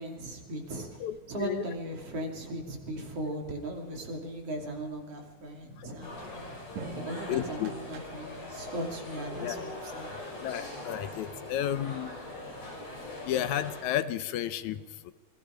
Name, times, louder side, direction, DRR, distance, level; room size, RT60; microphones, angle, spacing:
voice 1, 0.0-1.0 1.3-6.5 6.9-10.1, right 1 dB, 55° right, 2 dB, 3.7 m, -38 dB
voice 2, 1.0-1.6 5.8-5.9 7.3-7.7 9.4-9.6 10.4-12.2 13.3-14.8 15.1-15.2, left 11 dB, 80° left, 13 dB, 2.1 m, -32 dB
sound 1, 5.7-8.6, right 4 dB, 70° right, 2.8 m, -46 dB
sound 2, 6.0-13.8, left 1 dB, 55° left, 7.3 m, -41 dB
28.5 x 20.5 x 5.1 m, 1.4 s
omnidirectional pair, 3.4 m